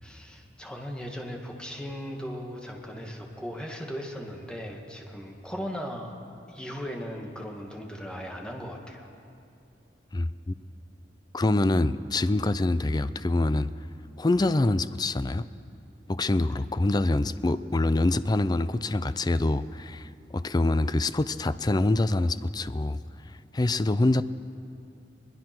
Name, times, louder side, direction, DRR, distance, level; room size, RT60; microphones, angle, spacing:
voice 1, 0.0-6.2 6.5-9.1, equal, 5° left, 2.0 m, -37 dB
voice 2, 10.1-10.5 11.3-13.7 14.2-15.4 16.1-23.0 23.5-24.2, left 2 dB, 25° left, 0.5 m, -25 dB
22.0 x 20.5 x 6.1 m
head